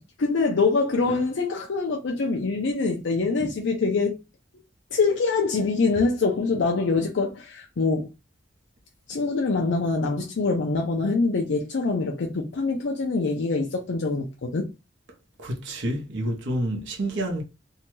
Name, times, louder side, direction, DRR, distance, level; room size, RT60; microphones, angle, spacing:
voice 1, 0.2-4.2 4.9-8.1 9.1-14.7, left 3 dB, 70° left, 0.5 m, -24 dB
voice 2, 15.4-17.4, right 1 dB, 80° right, 0.8 m, -28 dB
2.7 x 2.2 x 3.0 m
head